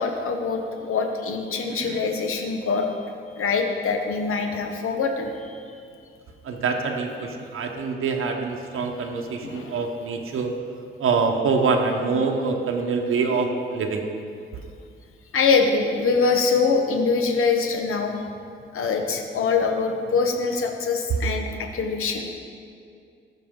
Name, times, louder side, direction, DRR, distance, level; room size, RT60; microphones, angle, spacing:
voice 1, 0.0-2.9 3.4-5.6 8.8-8.9 9.4-9.8 15.3-18.1 18.7-22.3, left 4 dB, 85° left, 3 dB, 0.9 m, -24 dB
voice 2, 6.4-10.5 11.0-14.0, right 4 dB, 75° right, 2 dB, 0.8 m, -25 dB
14.0 x 5.9 x 3.6 m, 2.3 s
wide cardioid pair, 140°, 21 cm